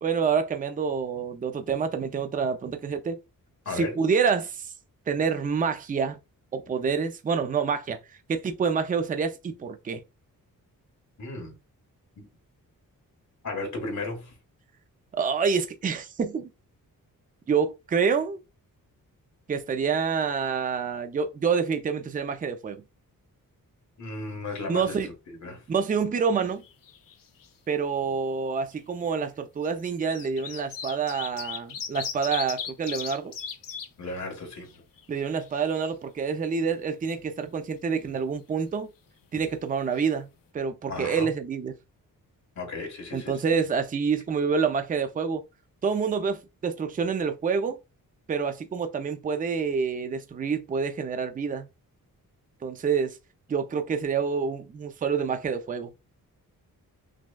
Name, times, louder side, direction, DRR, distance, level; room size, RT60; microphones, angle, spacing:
voice 1, 0.0-3.2 3.7-4.7 5.1-6.2 6.5-8.0 8.3-10.0 15.2-16.5 17.5-18.4 19.5-22.8 24.7-25.1 25.7-26.6 27.7-33.3 35.1-38.9 39.3-40.3 40.5-41.8 43.1-45.4 45.8-47.8 48.3-51.7 52.6-53.2 53.5-55.9, right 6 dB, 25° right, 0.4 m, -27 dB
voice 2, 3.6-4.0 11.2-11.5 12.2-12.3 13.4-14.3 24.0-25.6 34.0-34.8 40.9-41.3 42.6-43.6, left 3 dB, 55° left, 1.4 m, -35 dB
sound 1, 26.4-27.1 27.4-27.5 28.6-28.7 29.6-33.9 34.3-34.4 34.7-35.8 39.6-39.7 39.9-40.0, left 7 dB, 70° left, 0.6 m, -37 dB
6.0 x 2.2 x 2.2 m
wide cardioid pair, 150°, 34 cm